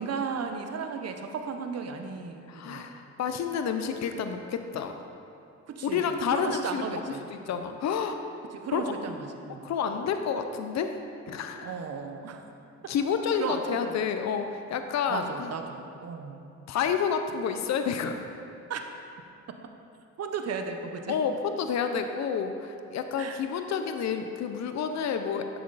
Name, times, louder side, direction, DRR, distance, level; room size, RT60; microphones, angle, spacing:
voice 1, 0.0-2.9 5.7-7.2 8.5-9.7 11.6-12.4 13.4-14.0 15.1-16.4 18.7-18.8 20.2-21.2 23.2-23.4, right 5 dB, 55° right, 5 dB, 1.0 m, -35 dB
voice 2, 2.5-5.0 5.8-7.0 7.3-8.2 8.7-8.8 9.6-11.0 11.3-11.7 12.9-15.5 16.7-18.3 21.1-25.5, left 7 dB, 65° left, 7 dB, 0.7 m, -29 dB
11.0 x 7.6 x 4.1 m, 2.6 s
cardioid pair, 90°, 30 cm